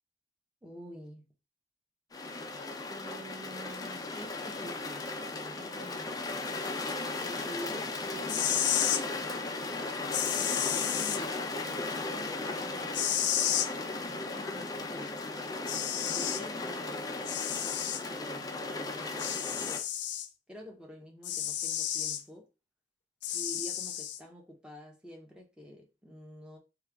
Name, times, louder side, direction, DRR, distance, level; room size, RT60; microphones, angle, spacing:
voice 1, 0.6-1.3 2.9-6.3 7.2-8.6 10.4-13.3 14.0-15.3 16.0-19.9 20.5-22.5 23.3-26.6, equal, 5° right, 1.0 m, -47 dB
sound 1, 2.1-19.8, left 3 dB, 20° left, 0.4 m, -36 dB
sound 2, 8.3-9.0 10.1-11.2 12.9-13.7 15.2-15.3 15.7-16.4 17.3-18.0 19.2-20.3 21.2-22.2 23.2-24.2, left 10 dB, 85° left, 0.4 m, -31 dB
3.3 x 2.4 x 3.4 m
head